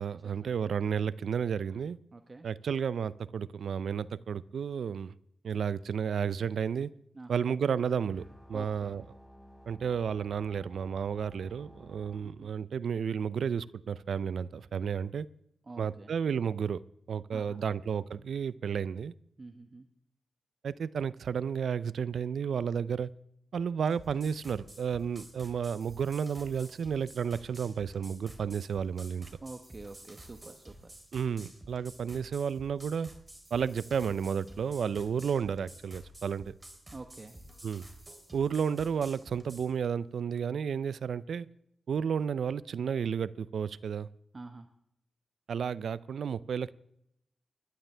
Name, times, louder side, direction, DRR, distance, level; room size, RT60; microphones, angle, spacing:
voice 1, 0.0-2.0 2.4-5.1 5.4-6.9 7.3-8.2 8.5-9.0 9.7-15.3 15.8-16.8 17.1-19.1 20.6-23.1 23.5-29.3 31.1-33.1 33.5-36.5 37.6-37.9 38.3-41.5 41.9-44.1 45.5-46.7, right 7 dB, 80° right, 19 dB, 0.4 m, -32 dB
voice 2, 2.1-2.5 7.1-7.4 8.5-9.0 12.2-12.5 15.7-16.1 17.3-17.6 19.4-19.9 29.4-30.9 36.9-37.4 44.3-44.7, right 3 dB, 40° right, 6 dB, 1.1 m, -46 dB
sound 1, 8.1-12.2, equal, 5° left, 4.6 m, -54 dB
sound 2, 23.9-39.7, right 1 dB, 20° right, 3.4 m, -51 dB
20.5 x 11.5 x 3.4 m, 0.76 s
cardioid pair, 55°, 0 cm